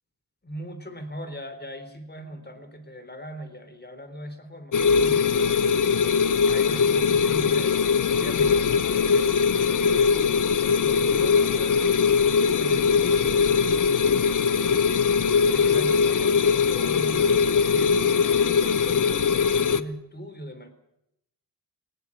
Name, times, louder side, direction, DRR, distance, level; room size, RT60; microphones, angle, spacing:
voice 1, 0.4-5.7 6.5-11.8 12.5-14.4 15.4-20.7, equal, 25° left, 9 dB, 3.8 m, -40 dB
sound 1, 4.7-19.8, left 6 dB, 55° left, 1.0 m, -21 dB
18.5 x 18.0 x 9.9 m, 0.81 s
wide cardioid pair, 90°, 36 cm